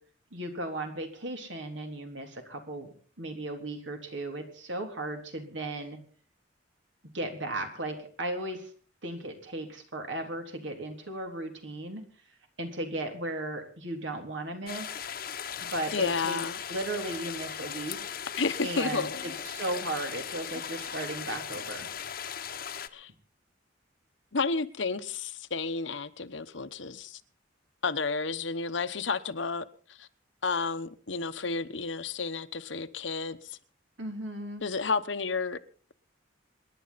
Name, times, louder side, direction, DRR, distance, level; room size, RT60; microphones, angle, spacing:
voice 1, 0.3-2.9 3.2-6.0 7.1-8.7 9.0-12.0 12.6-15.1 15.6-16.4 16.7-18.0 18.6-21.9 34.0-34.6, right 1 dB, 75° right, 3.4 m, -36 dB
sound 1, 14.7-22.9, left 8 dB, 50° left, 1.0 m, -38 dB
voice 2, 15.9-16.6 18.4-19.3 22.9-23.1 24.3-27.2 27.8-30.1 30.4-33.6 34.6-35.6, left 4 dB, 75° left, 1.0 m, -31 dB
27.0 x 11.0 x 4.1 m
head